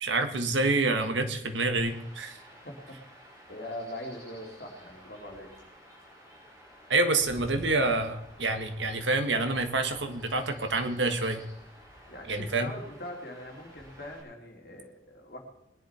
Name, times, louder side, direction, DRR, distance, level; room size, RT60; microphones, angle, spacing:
voice 1, 0.0-2.4 6.9-11.4 12.3-12.7, right 3 dB, 85° right, 7 dB, 1.6 m, -27 dB
Chirp tweet / Wind / Stream, 1.8-14.2, equal, 15° right, 5.2 m, -52 dB
voice 2, 2.6-3.0 3.5-5.5 12.1-15.4, left 1 dB, 55° left, 1 dB, 2.9 m, -42 dB
21.0 x 10.5 x 4.4 m, 0.84 s
head